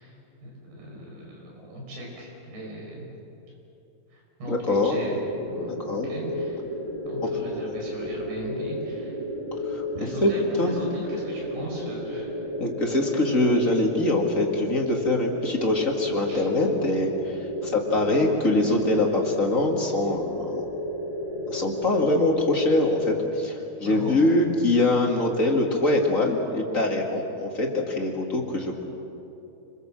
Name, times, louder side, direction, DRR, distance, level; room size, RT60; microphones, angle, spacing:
voice 1, 0.0-3.1 4.1-5.2 5.5-6.6 7.1-9.2 10.0-12.4 16.3-16.5 23.8-24.2, right 1 dB, 85° right, -1 dB, 7.4 m, -38 dB
voice 2, 4.5-5.0 5.9-6.1 9.7-9.8 10.2-10.3 10.6-10.7 12.6-20.7 21.5-28.7, left 2 dB, 30° left, 0 dB, 1.6 m, -23 dB
sound 1, 4.7-23.2, left 1 dB, 10° right, 2.4 m, -32 dB
26.0 x 22.0 x 7.5 m, 2.9 s
omnidirectional pair, 4.4 m